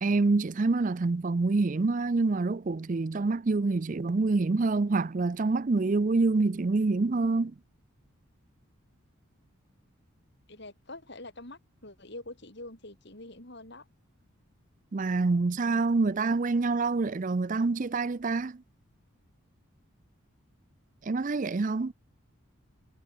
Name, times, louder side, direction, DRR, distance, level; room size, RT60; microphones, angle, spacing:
voice 1, 0.0-7.5 14.9-18.6 21.0-21.9, right 3 dB, 35° right, 0.4 m, -26 dB
voice 2, 10.5-13.8, left 2 dB, 50° left, 3.7 m, -45 dB
head